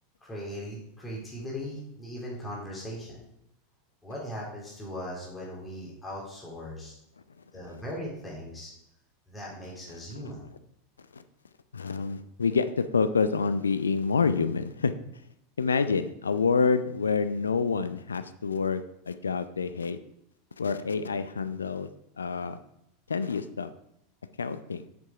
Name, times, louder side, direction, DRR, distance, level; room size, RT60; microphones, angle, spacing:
voice 1, 0.2-3.2 4.0-6.9 7.5-8.7 9.3-10.4, equal, 15° left, -4 dB, 3.6 m, -39 dB
voice 2, 11.7-14.9 15.6-20.0 20.6-21.9 22.2-22.6 23.1-23.7 24.4-24.8, left 5 dB, 80° left, 12 dB, 0.5 m, -27 dB
8.4 x 7.0 x 4.9 m, 0.79 s
figure-of-eight pair, 85°, 0 cm